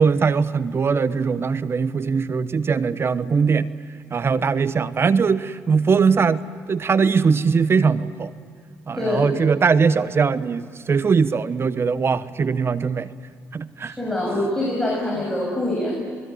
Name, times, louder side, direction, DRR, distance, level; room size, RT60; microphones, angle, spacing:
voice 1, 0.0-3.7 4.1-6.4 6.7-8.3 8.9-13.1 13.5-13.9, right 5 dB, 40° right, 15 dB, 1.0 m, -20 dB
voice 2, 8.9-9.3 14.0-15.9, left 1 dB, 5° left, -2 dB, 7.2 m, -24 dB
28.0 x 20.5 x 9.2 m, 2.1 s
supercardioid pair, 65°, 6 cm